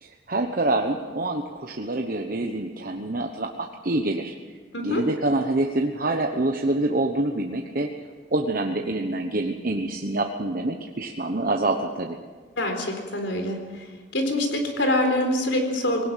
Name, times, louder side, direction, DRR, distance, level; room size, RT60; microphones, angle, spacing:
voice 1, 0.0-4.3 4.8-7.9 8.3-12.2, right 2 dB, 50° right, 3 dB, 1.1 m, -26 dB
voice 2, 12.6-13.8 14.1-16.1, left 1 dB, 75° left, 4 dB, 4.1 m, -25 dB
20.0 x 18.5 x 7.5 m, 1.5 s
head